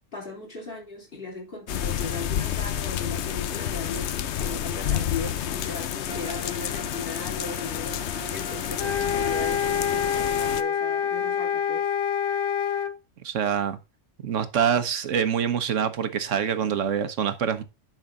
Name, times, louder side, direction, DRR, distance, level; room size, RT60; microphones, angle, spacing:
voice 1, 0.1-11.9, left 3 dB, 45° left, 3.8 m, -37 dB
sound 1, 1.7-10.6, left 10 dB, 65° left, 0.9 m, -30 dB
Bowed string instrument, 6.1-9.6, left 1 dB, 30° right, 1.1 m, -41 dB
sound 2, 8.8-12.9, left 8 dB, 85° left, 1.3 m, -26 dB
voice 2, 13.2-13.8 14.2-17.6, right 8 dB, 70° right, 1.4 m, -25 dB
10.5 x 5.6 x 3.8 m
omnidirectional pair, 1.3 m